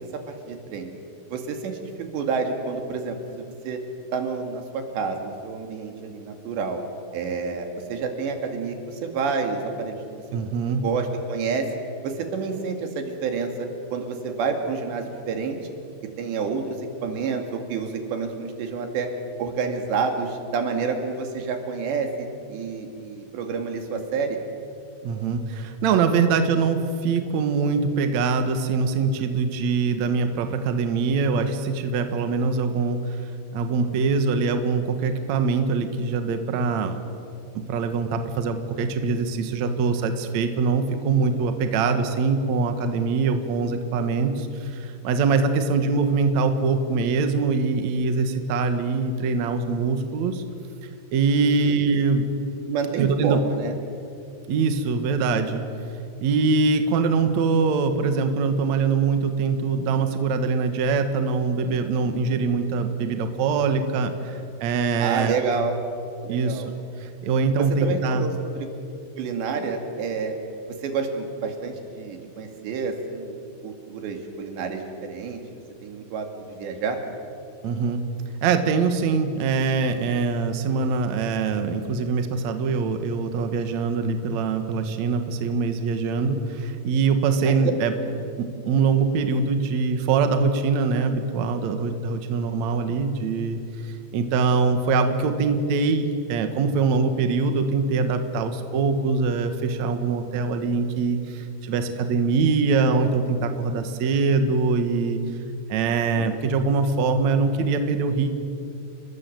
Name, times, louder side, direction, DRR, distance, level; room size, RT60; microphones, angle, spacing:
voice 1, 0.3-0.9 1.3-1.7 2.1-3.8 4.1-6.8 7.1-10.2 10.8-11.7 12.0-13.5 13.9-15.6 16.2-19.1 19.4-24.4 51.6-51.7 52.7-53.7 65.0-65.8 66.2-66.7 67.8-68.7 69.2-70.3 70.8-73.4 73.6-75.4 75.8-76.3 76.6-77.0 87.4-87.7 106.2-106.3, right 5 dB, 90° right, 4 dB, 4.6 m, -29 dB
voice 2, 10.3-10.8 25.0-33.2 33.5-37.0 37.5-50.4 51.1-52.3 53.0-53.4 54.5-55.7 56.2-65.5 66.3-66.6 67.0-68.3 77.6-78.0 78.4-87.9 88.4-105.2 105.7-108.3, right 4 dB, 55° right, 7 dB, 2.3 m, -23 dB
30.0 x 20.5 x 7.8 m, 2.6 s
omnidirectional pair, 4.9 m